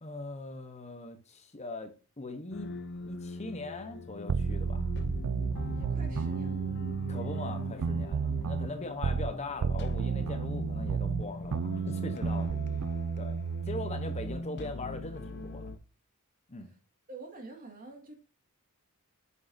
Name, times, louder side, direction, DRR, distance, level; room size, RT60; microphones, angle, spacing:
voice 1, 0.0-2.7 3.0-4.9 7.1-12.6 13.2-15.7 16.5-16.7, left 2 dB, 30° left, 1.0 m, -41 dB
sound 1, 2.5-15.8, left 2 dB, 50° left, 0.7 m, -41 dB
sound 2, 4.3-9.4 9.6-14.4, right 6 dB, 70° right, 0.4 m, -32 dB
voice 2, 5.5-6.8 8.8-8.9 16.6-16.8 17.1-18.1, right 2 dB, 40° right, 2.1 m, -48 dB
8.3 x 7.3 x 2.7 m
head